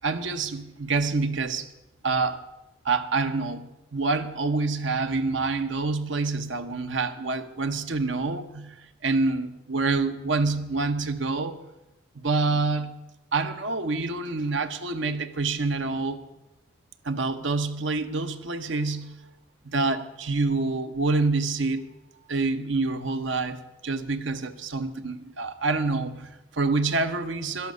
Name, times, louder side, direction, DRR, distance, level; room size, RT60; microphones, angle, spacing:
voice 1, 0.0-1.7 2.0-2.4 2.8-8.7 9.0-11.6 12.1-13.0 13.3-16.2 17.0-19.2 19.6-21.9 22.3-27.7, right 3 dB, 75° right, 1.0 m, -27 dB
12.5 x 11.5 x 6.7 m
head